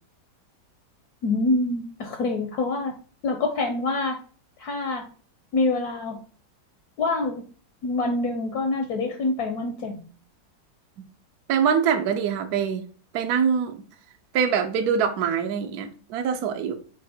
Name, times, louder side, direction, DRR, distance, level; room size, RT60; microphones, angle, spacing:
voice 1, 1.2-2.9 3.2-4.2 4.6-5.1 5.5-6.2 7.0-7.4 7.8-10.0, left 2 dB, 70° left, 1.0 m, -26 dB
voice 2, 11.5-12.8 13.1-13.8 14.3-16.8, right 7 dB, 65° right, 1.0 m, -24 dB
4.6 x 2.5 x 4.2 m
omnidirectional pair, 2.0 m